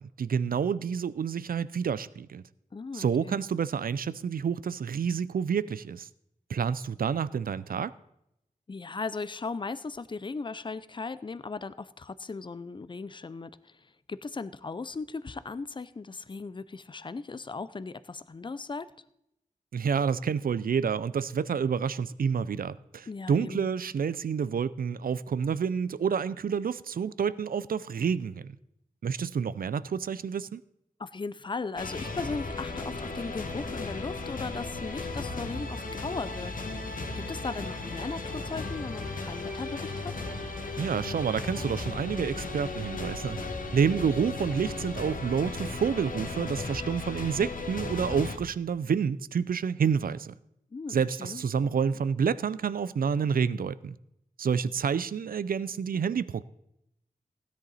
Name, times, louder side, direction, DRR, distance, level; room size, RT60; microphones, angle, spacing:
voice 1, 0.2-2.4 2.9-6.1 6.5-7.9 19.7-28.6 29.0-30.6 40.8-43.4 43.7-50.3 50.9-54.0 54.4-56.4, right 6 dB, 80° right, 0.4 m, -29 dB
voice 2, 2.7-3.4 8.7-13.8 14.1-18.9 23.1-23.7 31.0-40.2 50.7-51.4, left 4 dB, 35° left, 0.5 m, -37 dB
sound 1, 31.8-48.4, left 3 dB, 70° left, 1.4 m, -36 dB
16.0 x 10.5 x 4.1 m
wide cardioid pair, 100°, 15 cm